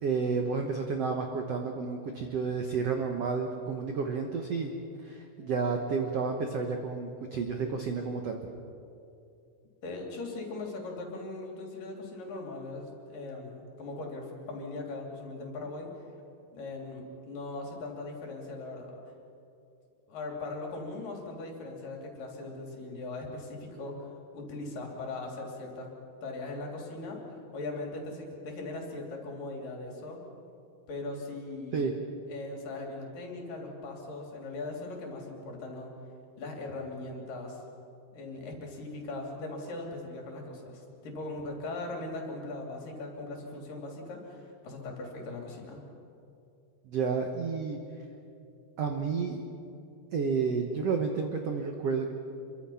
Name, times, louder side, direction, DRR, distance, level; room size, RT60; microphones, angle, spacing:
voice 1, 0.0-4.7 5.0-8.4 31.7-31.9 46.8-47.8 48.8-49.4 50.1-52.1, right 5 dB, 85° right, 4 dB, 1.3 m, -31 dB
voice 2, 9.8-15.9 16.5-19.0 20.1-24.0 24.3-25.9 26.2-27.2 27.5-30.2 30.9-31.8 32.3-35.9 36.4-37.6 38.1-45.8, left 2 dB, 55° left, 0 dB, 4.5 m, -39 dB
27.5 x 23.5 x 5.8 m, 2.6 s
omnidirectional pair, 4.8 m